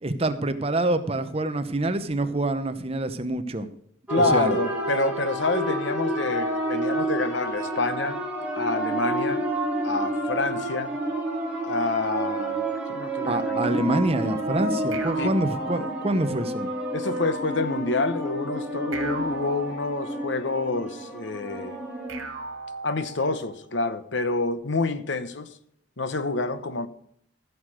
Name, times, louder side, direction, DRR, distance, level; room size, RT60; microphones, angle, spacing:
voice 1, 0.0-3.7 4.1-4.6 13.3-16.7, right 1 dB, 30° right, 0.8 m, -26 dB
voice 2, 4.1-8.2 8.6-9.5 9.8-11.0 11.6-13.6 15.2-15.3 16.9-21.8 22.8-25.5 26.0-26.9, left 3 dB, 65° left, 0.9 m, -28 dB
sound 1, 4.1-22.3, right 1 dB, 5° right, 2.5 m, -29 dB
sound 2, 14.9-16.5 18.9-20.5 22.1-23.6, right 3 dB, 75° right, 2.3 m, -37 dB
15.0 x 6.6 x 6.4 m
head